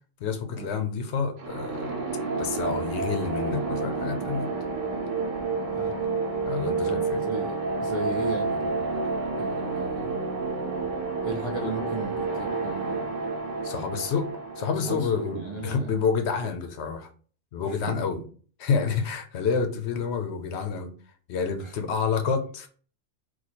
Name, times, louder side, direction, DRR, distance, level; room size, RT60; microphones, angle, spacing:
voice 1, 0.2-1.9 2.4-4.5 6.5-7.2 13.6-14.3 14.6-17.1 17.5-18.2 18.6-20.9 21.3-22.7, left 5 dB, 65° left, 0.8 m, -28 dB
sound 1, 1.4-16.1, right 3 dB, 75° right, 1.0 m, -30 dB
voice 2, 6.8-9.0 9.4-10.1 11.2-13.1 14.8-15.9 16.4-16.5 17.6-18.1 18.9-19.0 21.6-21.9, right 2 dB, 50° right, 0.3 m, -36 dB
2.9 x 2.3 x 4.1 m
omnidirectional pair, 1.3 m